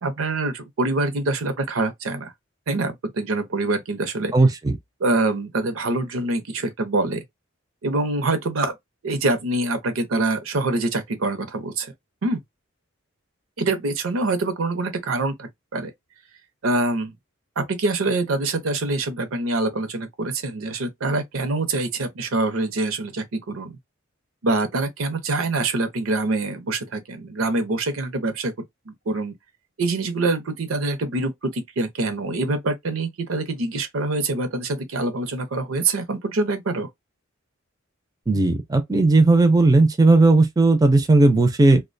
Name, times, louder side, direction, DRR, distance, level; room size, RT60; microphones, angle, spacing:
voice 1, 0.0-2.3 2.7-4.3 5.0-7.2 7.8-8.7 9.0-11.9 12.2-12.4 13.6-15.9 16.6-17.1 17.6-23.8 24.4-28.5 28.9-29.3 29.8-36.9, right 2 dB, 80° right, 0.6 m, -25 dB
voice 2, 38.3-41.8, right 2 dB, 20° right, 0.3 m, -16 dB
2.3 x 2.1 x 2.5 m
head